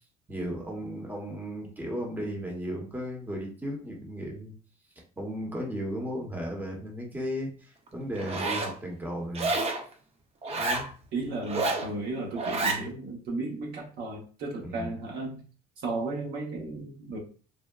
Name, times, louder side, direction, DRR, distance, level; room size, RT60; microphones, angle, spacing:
voice 1, 0.3-4.5 5.2-9.5 10.5-10.9 14.6-14.9, equal, 10° right, 0 dB, 0.8 m, -35 dB
Zipper (clothing), 8.2-8.7 9.3-9.8 10.4-10.9 11.4-11.9 12.4-12.8, right 3 dB, 35° right, 0.5 m, -29 dB
voice 2, 11.1-15.4 15.8-17.2, right 2 dB, 70° right, -1 dB, 0.9 m, -34 dB
3.5 x 2.0 x 2.3 m, 0.40 s
cardioid pair, 110°, 17 cm